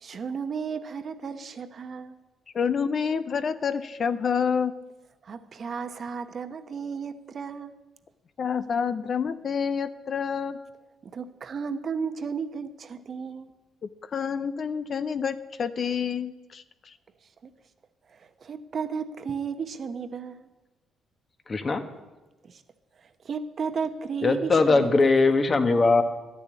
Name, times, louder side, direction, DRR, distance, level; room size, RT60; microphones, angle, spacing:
voice 1, 0.0-2.2 5.2-7.7 11.0-13.5 17.4-17.5 18.1-20.5 22.4-22.6 23.0-25.2, right 6 dB, 50° right, 10 dB, 0.9 m, -34 dB
voice 2, 2.5-4.7 8.4-10.6 14.1-16.9, left 6 dB, 50° left, 12 dB, 0.6 m, -28 dB
voice 3, 21.5-21.8 24.2-26.0, left 3 dB, 35° left, 7 dB, 1.3 m, -20 dB
12.0 x 7.0 x 9.5 m, 1.1 s
cardioid pair, 90°, 0 cm